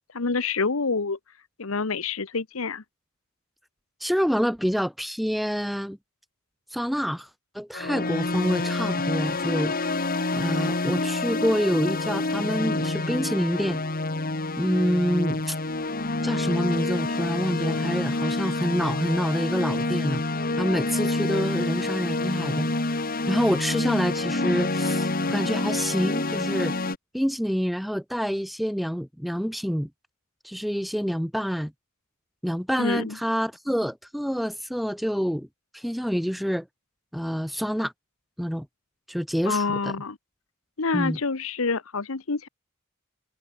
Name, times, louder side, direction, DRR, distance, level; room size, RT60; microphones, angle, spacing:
voice 1, 0.1-1.2 1.6-2.8 32.8-33.2 39.4-40.2 40.8-42.5, left 4 dB, 70° left, 1.1 m, -27 dB
voice 2, 4.0-6.0 6.7-7.3 7.5-9.7 10.3-13.8 14.6-15.6 16.2-20.2 20.6-26.8 27.1-29.9 30.4-31.7 32.4-35.5 35.7-36.7 37.1-37.9 38.4-38.7 39.1-39.9 40.9-41.2, equal, ahead, 1.6 m, -27 dB
sound 1, 7.7-27.0, left 2 dB, 45° left, 2.3 m, -27 dB
head